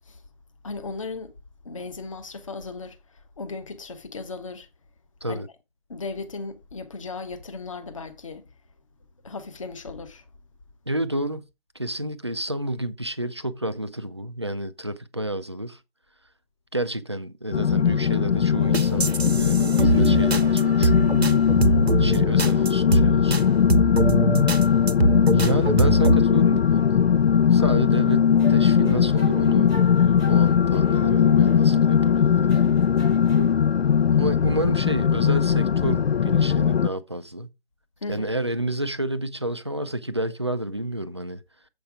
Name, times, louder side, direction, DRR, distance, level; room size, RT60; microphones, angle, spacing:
voice 1, 0.6-1.3 1.6-4.7 5.3-5.4 5.9-8.5 9.2-10.2 38.0-38.3, left 3 dB, 30° left, 1.1 m, -36 dB
voice 2, 10.9-11.4 11.7-15.8 16.7-21.1 22.0-23.6 25.3-27.1 27.4-32.8 34.1-37.5 38.1-41.4, right 1 dB, 30° right, 0.4 m, -30 dB
sound 1, 17.5-36.9, left 7 dB, 75° left, 0.4 m, -19 dB
sound 2, 18.7-23.4 23.7-26.2, right 2 dB, 90° right, 1.1 m, -23 dB
sound 3, 28.4-32.1 32.5-33.5, left 2 dB, 5° left, 1.0 m, -38 dB
7.7 x 5.7 x 4.8 m
figure-of-eight pair, 160°, 31 cm